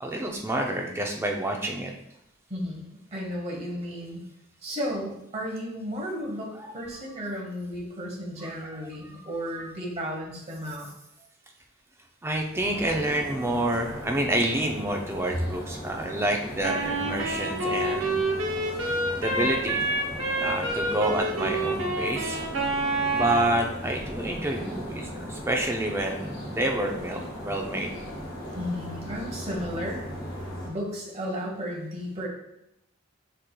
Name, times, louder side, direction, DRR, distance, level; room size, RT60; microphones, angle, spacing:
voice 1, 0.0-1.9 6.6-6.7 8.4-8.6 9.0-9.1 9.5-9.7 12.2-18.3 19.2-19.8 20.4-22.4 23.1-27.9, right 1 dB, 10° right, 2 dB, 0.4 m, -28 dB
voice 2, 2.5-4.2 4.6-10.9 28.5-30.0 30.7-32.3, equal, 30° right, -2 dB, 1.0 m, -34 dB
sound 1, 12.6-30.7, equal, 75° left, 1.7 m, -38 dB
Wind instrument woodwind instrument, 16.6-23.6, right 2 dB, 80° right, 0.8 m, -28 dB
4.9 x 4.4 x 2.2 m, 0.81 s
head